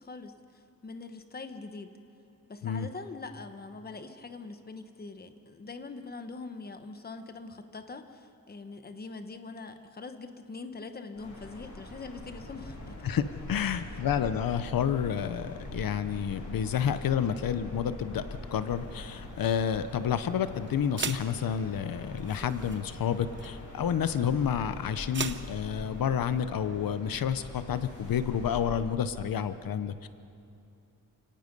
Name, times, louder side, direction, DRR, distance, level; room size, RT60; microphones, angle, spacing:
voice 1, 0.0-1.9 2.5-13.0 13.6-13.8, left 3 dB, 30° left, 8 dB, 1.1 m, -43 dB
sound 1, 11.1-28.8, left 1 dB, 55° left, 5.9 m, -43 dB
voice 2, 13.0-18.2 18.5-30.1, left 8 dB, 85° left, 12 dB, 0.8 m, -30 dB
sound 2, 18.7-26.4, right 6 dB, 35° right, 0.7 m, -42 dB
29.5 x 18.0 x 5.3 m, 2.7 s
wide cardioid pair, 165°, 34 cm